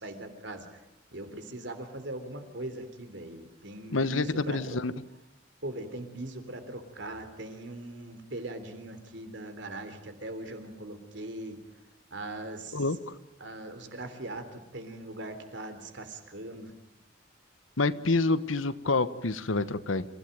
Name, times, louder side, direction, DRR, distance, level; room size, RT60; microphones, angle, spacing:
voice 1, 0.0-0.8 1.1-4.8 5.6-11.6 12.1-12.8 13.4-16.7, right 1 dB, 65° right, 8 dB, 3.5 m, -40 dB
voice 2, 3.9-4.9 12.7-13.1 17.8-20.1, left 3 dB, 85° left, 14 dB, 1.2 m, -27 dB
27.5 x 17.0 x 9.2 m, 0.91 s
head